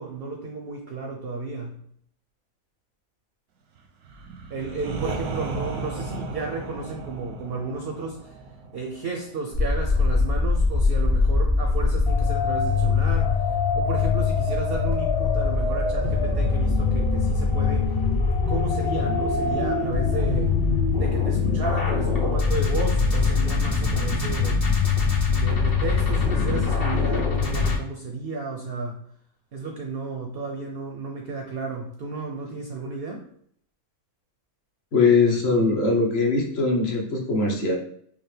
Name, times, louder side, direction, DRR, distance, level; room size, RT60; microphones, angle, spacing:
voice 1, 0.0-1.8 4.5-8.3 8.7-13.3 13.8-17.9 18.5-20.6 20.9-24.6 25.3-29.0 29.5-33.3, right 3 dB, 65° right, 2 dB, 0.6 m, -33 dB
sound 1, 4.0-9.8, right 3 dB, 90° right, 1.2 m, -35 dB
sound 2, 9.5-27.8, left 4 dB, 35° left, 0.6 m, -22 dB
voice 2, 34.9-37.8, left 3 dB, 50° left, 0 dB, 1.0 m, -21 dB
4.9 x 2.0 x 3.2 m, 0.65 s
omnidirectional pair, 1.5 m